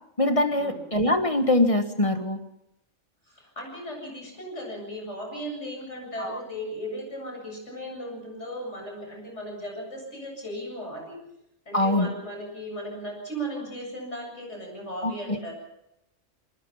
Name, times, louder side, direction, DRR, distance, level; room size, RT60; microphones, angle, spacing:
voice 1, 0.2-2.4 6.2-6.4 11.7-12.1 15.0-15.4, left 1 dB, 25° left, 7 dB, 1.4 m, -23 dB
voice 2, 3.3-11.2 11.7-15.5, equal, 65° left, 1 dB, 8.0 m, -36 dB
27.0 x 21.0 x 5.6 m, 0.82 s
omnidirectional pair, 1.3 m